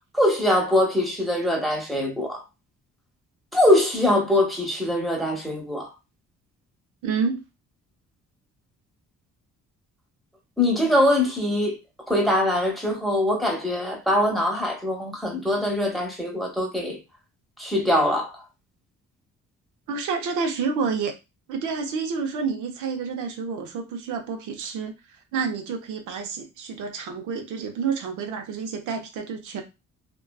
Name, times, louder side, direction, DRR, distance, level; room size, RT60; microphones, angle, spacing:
voice 1, 0.1-2.4 3.5-5.9 10.6-11.8 12.1-17.0 17.6-18.4, left 1 dB, ahead, 0.8 m, -22 dB
voice 2, 7.0-7.4 19.9-21.1 21.5-24.9 25.3-29.6, right 5 dB, 80° right, 0.6 m, -29 dB
2.5 x 2.2 x 2.2 m
cardioid pair, 90°, 30 cm